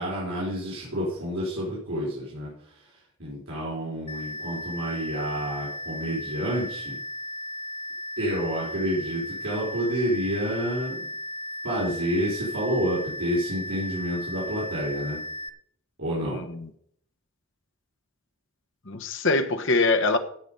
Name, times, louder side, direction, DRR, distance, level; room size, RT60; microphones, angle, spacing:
voice 1, 0.0-2.5 3.2-7.0 8.2-10.9 11.6-15.2 16.0-16.4, equal, 70° right, -7 dB, 5.1 m, -29 dB
sound 1, 4.1-15.5, equal, 25° left, 0.6 m, -36 dB
voice 2, 16.2-16.7 18.9-20.2, left 3 dB, 60° left, 6 dB, 1.2 m, -24 dB
16.5 x 6.1 x 5.4 m, 0.65 s
head